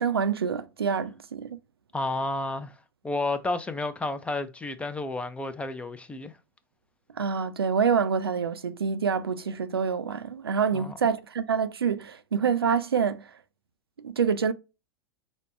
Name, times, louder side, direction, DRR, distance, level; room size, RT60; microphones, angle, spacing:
voice 1, 0.0-1.6 7.2-13.3 14.0-14.5, right 6 dB, 80° right, 0.4 m, -26 dB
voice 2, 1.9-2.7 3.0-6.3 10.7-11.0, left 2 dB, 10° left, 0.4 m, -31 dB
5.2 x 2.1 x 2.5 m
figure-of-eight pair, 90°, 12 cm